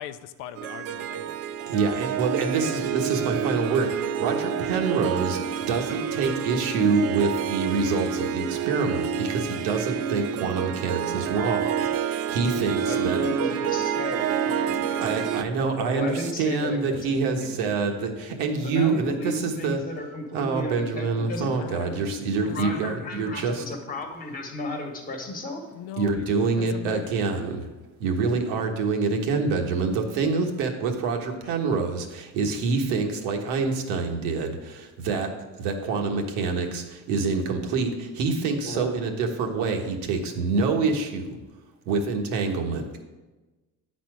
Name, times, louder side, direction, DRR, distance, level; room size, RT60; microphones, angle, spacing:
voice 1, 0.0-1.4 21.4-22.1 22.5-23.1 25.7-27.1 28.3-28.4, left 10 dB, 65° left, 12 dB, 0.5 m, -40 dB
Harp, 0.6-15.4, right 8 dB, 45° right, 0.4 m, -28 dB
voice 2, 1.7-5.4 5.7-13.2 15.0-19.8 20.3-23.6 26.0-27.7 28.0-35.3 35.6-41.3 41.9-43.0, right 4 dB, 90° right, 3 dB, 1.4 m, -26 dB
voice 3, 12.7-17.6 18.6-21.5 22.4-25.6 38.6-38.9, left 1 dB, 25° left, 2 dB, 1.3 m, -34 dB
9.3 x 4.3 x 6.1 m, 1.2 s
cardioid pair, 155°, 34 cm